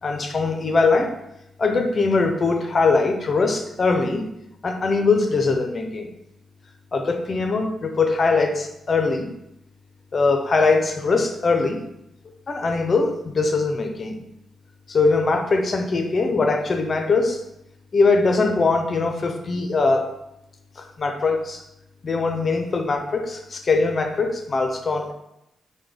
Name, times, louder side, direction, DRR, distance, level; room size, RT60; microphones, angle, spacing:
voice 1, 0.0-1.1 1.6-4.3 4.6-6.1 6.9-9.3 10.1-11.8 12.5-14.2 14.9-17.4 17.9-20.1 20.8-21.6 22.0-25.1, left 3 dB, 40° left, 4 dB, 0.6 m, -21 dB
5.7 x 2.2 x 3.3 m, 0.85 s
cardioid pair, 95°, 0 cm